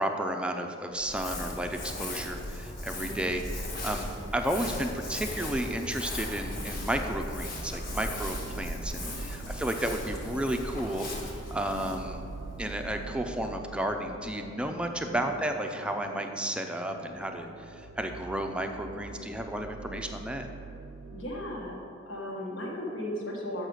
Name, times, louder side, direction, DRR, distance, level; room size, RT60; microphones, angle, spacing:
voice 1, 0.0-3.4 3.8-4.1 4.3-12.2 12.6-20.5, right 1 dB, 5° right, 4 dB, 0.5 m, -32 dB
Crumpling crinkling, 1.0-13.4, left 1 dB, 50° left, 1.4 m, -38 dB
sound 1, 1.9-21.8, right 4 dB, 80° right, 0.5 m, -46 dB
voice 2, 8.9-9.8 15.0-15.3 21.1-21.8 22.1-23.7, left 1 dB, 70° left, -1 dB, 1.5 m, -37 dB
6.6 x 6.5 x 6.2 m, 2.6 s
head